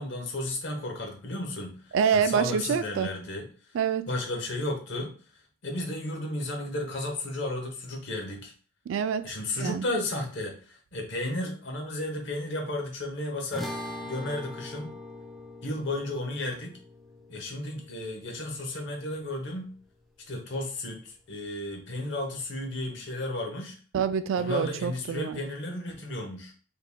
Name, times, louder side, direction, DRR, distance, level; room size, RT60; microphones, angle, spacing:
voice 1, 0.0-3.5 4.1-5.1 5.6-8.5 9.2-13.7 14.0-14.9 15.6-16.8 17.3-19.7 20.3-23.8 24.4-26.5, left 1 dB, 65° left, 0.9 m, -33 dB
voice 2, 1.9-3.1 3.7-4.1 8.9-9.3 9.6-9.8 23.9-25.4, right 7 dB, 80° right, 0.3 m, -26 dB
sound 1, 13.5-20.0, left 1 dB, ahead, 0.4 m, -42 dB
3.8 x 3.5 x 2.2 m
head